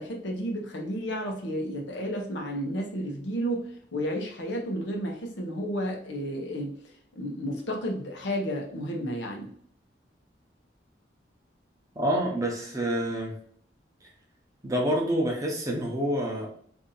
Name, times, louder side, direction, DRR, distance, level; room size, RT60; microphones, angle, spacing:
voice 1, 0.0-6.8 7.1-9.5, equal, 85° left, 1 dB, 0.8 m, -32 dB
voice 2, 12.0-13.4 14.6-16.5, equal, 20° right, -1 dB, 0.7 m, -27 dB
2.7 x 2.6 x 3.8 m, 0.63 s
head